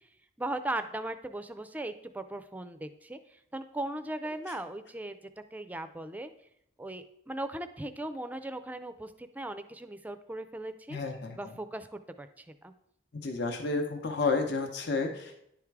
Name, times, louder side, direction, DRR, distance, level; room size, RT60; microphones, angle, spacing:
voice 1, 0.4-3.2 3.5-5.2 5.5-6.3 6.8-11.0 11.4-12.7, right 1 dB, 10° right, 9 dB, 0.4 m, -38 dB
voice 2, 10.9-11.4 13.1-15.4, left 3 dB, 60° left, 4 dB, 0.8 m, -31 dB
10.0 x 3.6 x 4.6 m, 0.75 s
head